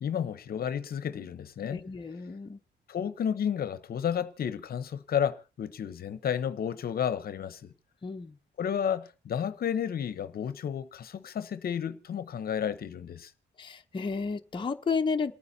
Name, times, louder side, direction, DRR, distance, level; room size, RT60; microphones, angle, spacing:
voice 1, 0.0-1.8 2.9-7.7 8.6-13.3, left 8 dB, 55° left, 0.8 m, -32 dB
voice 2, 1.7-2.6 8.0-8.4 13.6-15.3, left 5 dB, 25° left, 0.8 m, -32 dB
27.5 x 9.5 x 2.7 m
cardioid pair, 125°, 18 cm